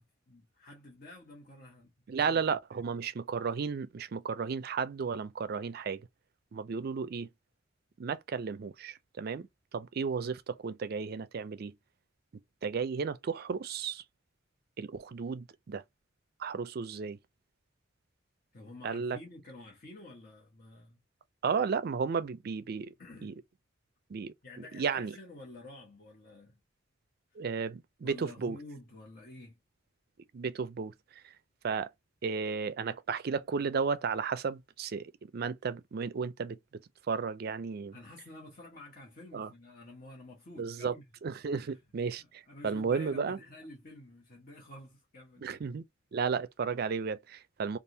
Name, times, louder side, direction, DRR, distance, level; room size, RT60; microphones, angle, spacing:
voice 1, 0.0-1.9 2.2-2.4 18.5-21.0 23.0-23.3 24.4-26.6 27.3-27.4 28.0-29.6 37.9-41.0 41.5-41.8 42.2-45.6, left 2 dB, 45° left, 1.1 m, -50 dB
voice 2, 2.1-6.0 6.5-7.3 8.0-11.7 12.6-14.0 14.8-15.8 16.4-17.2 18.8-19.2 21.4-22.9 23.2-23.3 24.1-24.3 24.7-25.1 27.4-28.6 30.3-31.3 31.6-31.9 32.2-36.8 37.1-38.0 39.3-39.5 40.6-41.0 41.2-43.4 45.4-45.8 46.1-47.8, right 5 dB, 50° right, 0.4 m, -34 dB
3.4 x 2.4 x 2.7 m
head